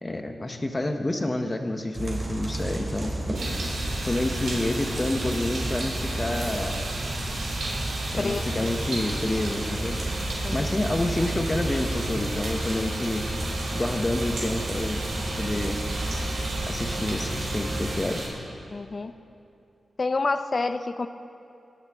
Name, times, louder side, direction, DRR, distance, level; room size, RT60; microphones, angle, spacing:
voice 1, 0.0-3.1 4.0-6.8 8.1-10.0 10.5-13.2 13.7-15.0 15.4-15.8 16.7-18.3, left 1 dB, 20° left, 5 dB, 1.0 m, -28 dB
sound 1, 1.9-18.0, right 1 dB, 30° right, 2.8 m, -32 dB
sound 2, 3.3-18.3, right 2 dB, 85° right, 3.6 m, -35 dB
voice 2, 8.2-8.7 10.4-10.7 18.7-19.1 20.0-21.1, left 3 dB, 40° left, 10 dB, 0.5 m, -28 dB
22.5 x 9.6 x 3.6 m, 2.7 s
wide cardioid pair, 105°, 0 cm